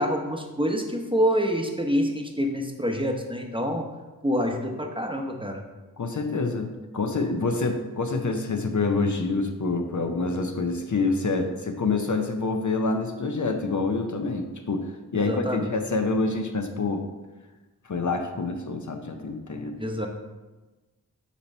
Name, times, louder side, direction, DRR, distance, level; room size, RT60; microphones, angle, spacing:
voice 1, 0.0-3.9 4.2-5.6 15.1-15.7 19.8-20.1, equal, 15° right, 3 dB, 0.8 m, -26 dB
voice 2, 6.0-17.0 17.9-19.8, left 3 dB, 55° left, 5 dB, 0.6 m, -27 dB
7.0 x 3.0 x 5.4 m, 1.2 s
wide cardioid pair, 60°, 37 cm